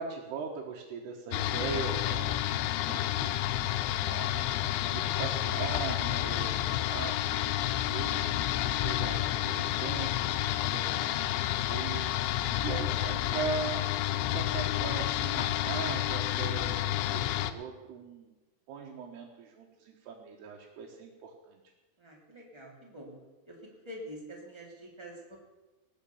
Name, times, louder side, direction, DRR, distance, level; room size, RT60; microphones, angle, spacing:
voice 1, 0.0-4.5 4.9-8.2 8.7-12.1 12.6-13.9 14.1-18.3 18.7-21.6, right 5 dB, 75° right, -1 dB, 3.2 m, -40 dB
sound 1, 1.3-17.5, left 13 dB, 90° left, 2.9 m, -30 dB
voice 2, 12.4-12.7 22.0-23.2 23.4-23.6 23.8-25.4, equal, 10° right, -2 dB, 2.2 m, -46 dB
19.0 x 6.7 x 7.0 m, 1.1 s
omnidirectional pair, 5.0 m